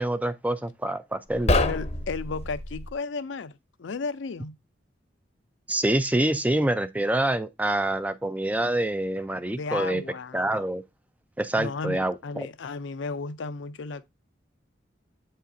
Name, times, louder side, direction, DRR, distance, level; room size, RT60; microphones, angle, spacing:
voice 1, 0.0-1.6 5.7-10.0 10.3-10.8 11.4-12.5, right 1 dB, 10° right, 0.4 m, -26 dB
sound 1, 1.3-2.9, left 2 dB, 35° left, 0.7 m, -26 dB
voice 2, 1.6-4.6 9.6-10.6 11.5-14.1, left 4 dB, 80° left, 0.5 m, -34 dB
8.1 x 5.0 x 2.6 m
head